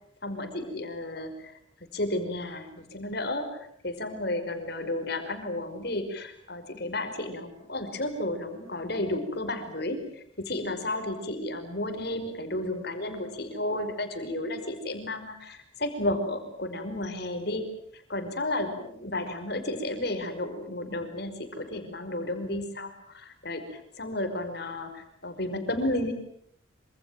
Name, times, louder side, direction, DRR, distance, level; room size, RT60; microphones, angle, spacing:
voice 1, 0.2-1.5 1.9-17.7 17.9-26.1, left 1 dB, 55° left, 7 dB, 5.3 m, -32 dB
27.5 x 26.5 x 7.6 m, 0.67 s
head